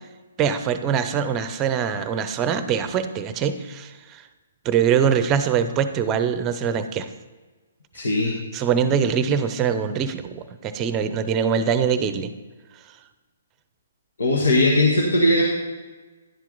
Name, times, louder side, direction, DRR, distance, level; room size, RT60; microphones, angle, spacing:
voice 1, 0.4-4.2 4.6-7.1 8.5-12.3, right 7 dB, 25° right, 11 dB, 0.7 m, -23 dB
voice 2, 7.9-8.3 14.2-15.4, left 1 dB, 75° left, -2 dB, 1.5 m, -19 dB
10.5 x 7.3 x 4.0 m, 1.3 s
figure-of-eight pair, 135°, 0 cm